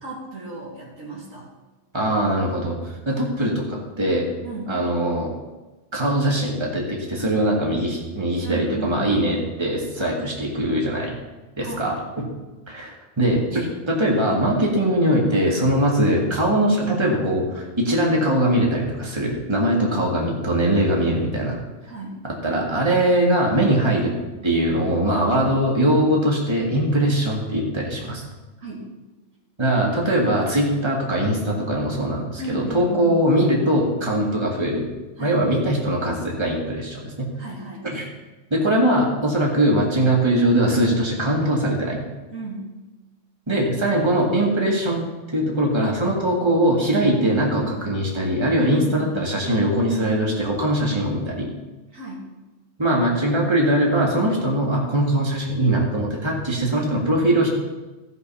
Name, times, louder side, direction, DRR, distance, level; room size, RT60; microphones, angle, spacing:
voice 1, 0.0-1.5 4.4-4.8 8.4-9.4 11.6-11.9 19.7-20.0 21.9-22.2 28.6-28.9 32.4-33.2 35.2-35.5 37.3-37.9 42.3-42.7 48.6-49.2 51.9-52.3, right 1 dB, 85° right, -4 dB, 3.2 m, -34 dB
voice 2, 1.9-4.3 4.7-5.3 5.9-11.1 11.6-12.3 12.7-12.9 13.2-21.6 22.4-24.1 24.4-28.2 29.6-34.8 35.2-37.3 37.9-38.0 38.5-42.0 43.5-45.1 45.3-51.5 52.8-57.5, right 1 dB, 20° right, -3 dB, 2.1 m, -21 dB
16.0 x 5.5 x 5.7 m, 1.2 s
omnidirectional pair, 1.3 m